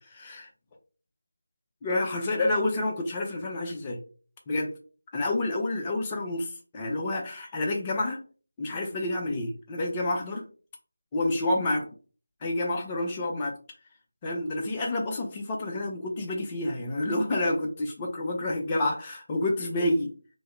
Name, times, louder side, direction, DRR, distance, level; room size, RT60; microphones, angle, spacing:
voice 1, 0.1-0.5 1.8-4.0 4.5-4.7 5.1-8.2 8.6-10.5 11.1-11.9 12.4-13.6 14.2-20.1, left 2 dB, 15° left, 1 dB, 0.5 m, -29 dB
2.9 x 2.1 x 3.6 m, 0.38 s
figure-of-eight pair, 165°, 0 cm